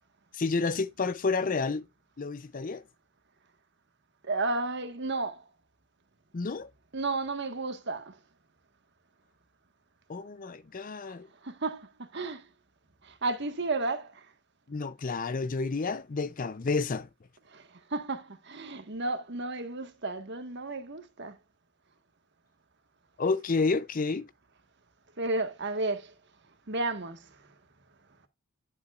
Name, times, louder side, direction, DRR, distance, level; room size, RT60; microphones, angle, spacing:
voice 1, 0.3-1.8 2.2-2.8 6.3-6.7 10.1-11.3 14.7-17.1 23.2-24.3, left 4 dB, 40° left, 0.5 m, -30 dB
voice 2, 4.2-5.4 6.9-8.2 11.1-11.2 11.4-12.5 13.0-14.3 17.5-21.3 25.2-26.1 26.7-27.5, right 2 dB, 50° right, 1.5 m, -33 dB
11.0 x 7.3 x 2.4 m
head